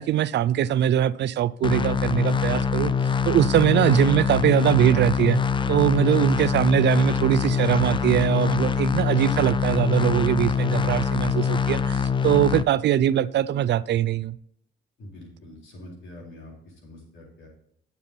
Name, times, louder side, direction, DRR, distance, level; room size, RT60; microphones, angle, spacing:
voice 1, 0.0-2.9 3.3-5.4 5.7-14.4, right 11 dB, 60° right, 0.4 m, -22 dB
sound 1, 1.6-12.6, left 6 dB, 25° left, 0.4 m, -24 dB
voice 2, 15.0-17.5, left 1 dB, 75° left, 4.0 m, -45 dB
9.4 x 6.9 x 4.4 m
cardioid pair, 90°, 20 cm